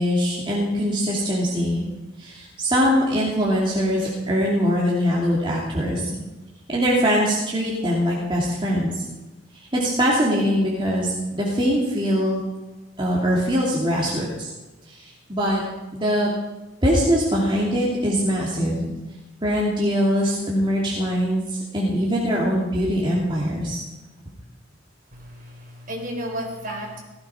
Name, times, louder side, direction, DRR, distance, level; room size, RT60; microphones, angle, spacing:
voice 1, 0.0-1.9 2.2-6.1 6.7-9.0 9.5-12.4 13.0-14.5 14.9-15.6 15.9-16.3 16.8-18.9 19.4-23.8, equal, 25° right, -5 dB, 2.7 m, -22 dB
voice 2, 25.1-27.0, equal, 45° right, 1 dB, 4.2 m, -33 dB
17.5 x 15.0 x 5.0 m, 1.1 s
head